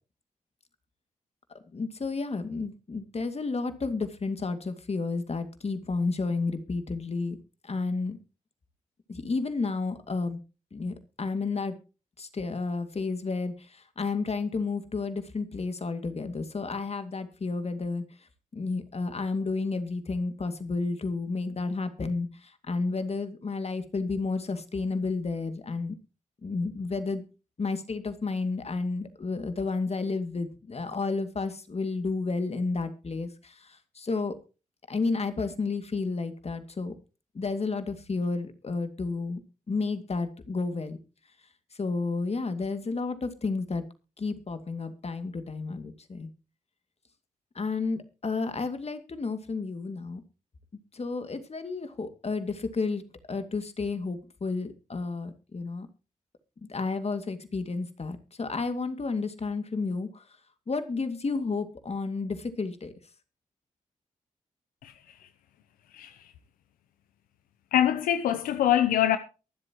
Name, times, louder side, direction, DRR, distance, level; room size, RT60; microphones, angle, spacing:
voice 1, 1.7-7.4 7.6-8.2 9.1-10.4 10.7-11.7 12.2-18.0 18.5-26.0 26.4-27.2 27.6-34.3 34.9-36.9 37.3-39.4 39.7-41.0 41.8-43.8 44.2-46.3 47.5-50.2 50.9-53.0 53.3-55.9 56.7-60.2 60.7-62.9, left 3 dB, 50° left, 2.4 m, -31 dB
voice 2, 64.8-65.3 65.9-66.3 67.7-69.2, left 11 dB, 90° left, 0.7 m, -25 dB
23.5 x 7.8 x 3.0 m
supercardioid pair, 40°, 14 cm